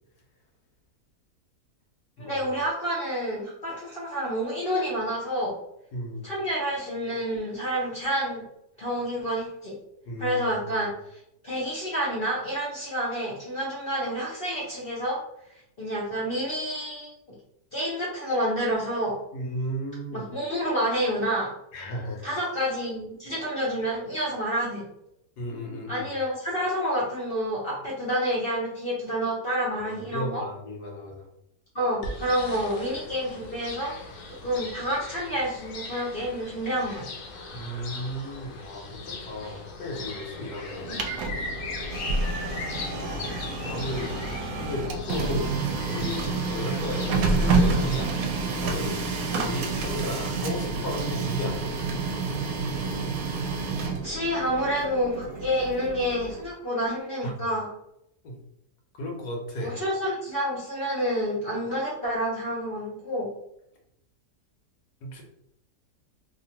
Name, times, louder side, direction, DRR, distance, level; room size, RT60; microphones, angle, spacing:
voice 1, 2.2-5.5 6.2-8.4 8.8-9.7 10.2-15.2 15.8-17.1 17.7-19.2 20.1-21.5 22.2-24.8 25.9-30.4 31.7-33.9 34.4-37.0 39.4-39.6 40.9-41.0 49.3-49.4 53.8-57.7 59.6-63.3, equal, 50° left, -5 dB, 0.7 m, -29 dB
voice 2, 5.9-6.3 10.1-10.8 19.3-20.3 21.7-22.2 25.4-26.1 29.8-31.3 37.5-41.0 42.9-43.3 43.6-44.2 44.6-48.1 48.6-49.1 49.4-51.8 57.2-57.3 58.2-58.4 59.0-59.8 65.0-65.2, left 1 dB, 85° left, 1 dB, 1.3 m, -34 dB
sound 1, 32.0-48.0, left 3 dB, 70° left, 0.9 m, -39 dB
Printer, 40.7-56.5, right 4 dB, 70° right, 1.0 m, -29 dB
2.9 x 2.5 x 2.8 m, 0.79 s
omnidirectional pair, 1.6 m